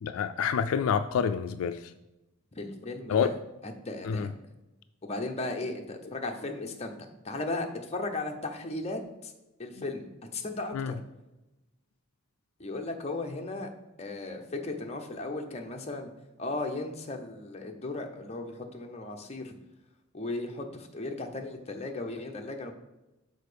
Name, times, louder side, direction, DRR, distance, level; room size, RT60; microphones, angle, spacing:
voice 1, 0.0-1.8 3.1-3.3 4.0-4.3 10.7-10.9, left 7 dB, 75° left, 0.3 m, -27 dB
voice 2, 2.6-3.3 3.6-4.3 5.0-9.3 9.6-10.9 12.6-13.7 14.0-16.1 16.4-19.5 20.1-22.7, left 2 dB, 30° left, 0.7 m, -36 dB
6.5 x 4.5 x 5.0 m
head